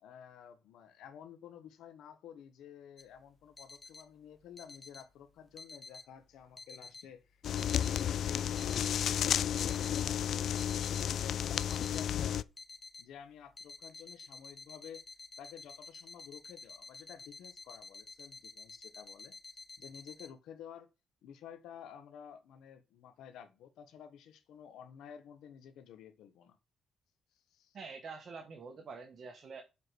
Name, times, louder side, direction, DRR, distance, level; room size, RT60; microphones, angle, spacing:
voice 1, 0.0-12.5 13.0-15.0 15.4-20.9 21.2-26.6 27.5-27.8, left 8 dB, 80° left, 1.4 m, -52 dB
sound 1, 3.0-20.3, left 3 dB, 30° left, 1.4 m, -51 dB
sound 2, 7.4-12.4, left 9 dB, 65° left, 0.4 m, -32 dB
voice 2, 27.7-29.6, right 4 dB, 50° right, 1.6 m, -46 dB
7.5 x 4.9 x 6.2 m
cardioid pair, 90°, 0 cm